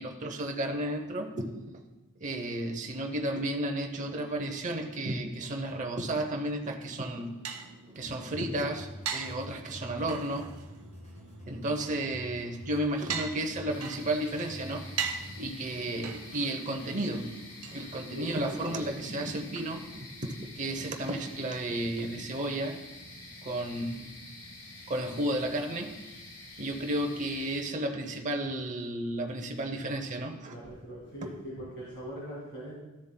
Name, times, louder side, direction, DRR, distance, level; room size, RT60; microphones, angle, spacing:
voice 1, 0.0-1.5 2.2-7.3 7.9-10.5 11.5-14.8 15.3-17.3 17.7-22.8 23.4-24.1 24.9-26.1 26.6-30.6 31.2-31.3, right 1 dB, 35° right, 3 dB, 0.7 m, -33 dB
sound 1, 6.8-18.5, right 6 dB, 85° right, 0.7 m, -42 dB
sound 2, 8.0-15.6, equal, 35° left, 1.4 m, -47 dB
sound 3, 13.7-27.6, left 2 dB, 85° left, 1.7 m, -47 dB
voice 2, 18.1-18.9 30.5-32.7, right 1 dB, 60° left, -6 dB, 2.2 m, -41 dB
13.5 x 7.1 x 2.2 m, 1.1 s
head